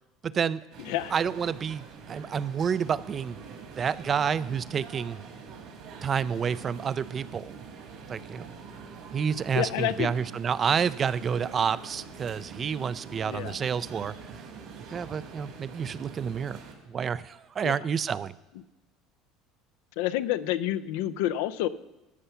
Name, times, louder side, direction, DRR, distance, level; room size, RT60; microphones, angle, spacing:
voice 1, 0.2-0.6 1.1-3.4 3.8-5.2 6.0-7.6 8.1-8.4 9.1-14.1 14.9-16.6 16.9-18.3, right 7 dB, 35° right, 17 dB, 0.4 m, -29 dB
sound 1, 0.7-16.7, right 5 dB, 65° right, 2.5 m, -45 dB
voice 2, 0.8-1.1 9.5-10.1 13.3-13.6 17.6-17.8 20.0-21.7, left 13 dB, 80° left, 12 dB, 0.4 m, -29 dB
13.5 x 5.7 x 5.7 m, 0.99 s
supercardioid pair, 95°, 0 cm